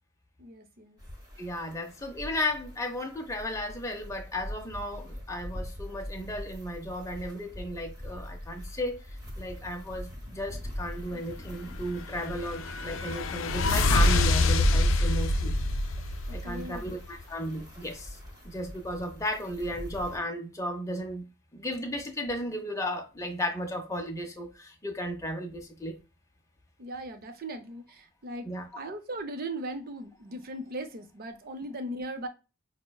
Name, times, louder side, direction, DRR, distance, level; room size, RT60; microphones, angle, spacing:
voice 1, 0.4-1.0 16.3-16.9 26.8-32.3, right 1 dB, 45° right, 0.6 m, -38 dB
sound 1, 1.0-20.2, equal, 20° right, 1.1 m, -42 dB
voice 2, 1.4-15.5 16.3-18.2 18.4-21.3 21.5-26.0 28.4-28.7, left 1 dB, 15° left, 0.6 m, -34 dB
sound 2, 11.9-16.9, left 2 dB, 65° left, 0.4 m, -26 dB
5.5 x 2.1 x 2.3 m
head